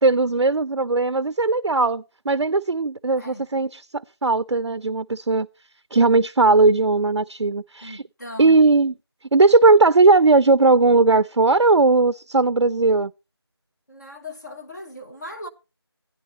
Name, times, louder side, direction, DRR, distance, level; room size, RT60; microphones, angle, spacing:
voice 1, 0.0-5.5 5.9-8.0 8.4-8.9 9.3-13.1, right 3 dB, 85° right, 0.4 m, -18 dB
voice 2, 3.2-3.5 7.8-8.6 13.9-15.5, left 1 dB, 40° left, 1.0 m, -38 dB
13.0 x 10.0 x 3.0 m
figure-of-eight pair, 170°, 14 cm